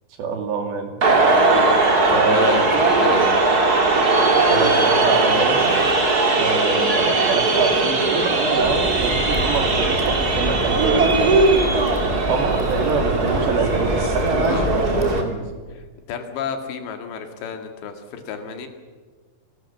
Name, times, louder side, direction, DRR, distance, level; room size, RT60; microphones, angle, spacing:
voice 1, 0.2-0.9 2.1-2.6 4.5-5.8 6.4-11.1 12.2-15.5, right 5 dB, 70° right, 5 dB, 4.7 m, -25 dB
sound 1, 1.0-15.2, right 3 dB, 30° right, 2.1 m, -19 dB
voice 2, 2.1-2.6 2.9-3.3 11.8-12.1 14.4-14.7 15.7-15.8 16.1-18.7, left 6 dB, 70° left, 6 dB, 4.2 m, -30 dB
sound 2, 8.6-15.2, equal, 10° right, 2.9 m, -29 dB
28.5 x 19.5 x 7.3 m, 1.5 s
omnidirectional pair, 5.3 m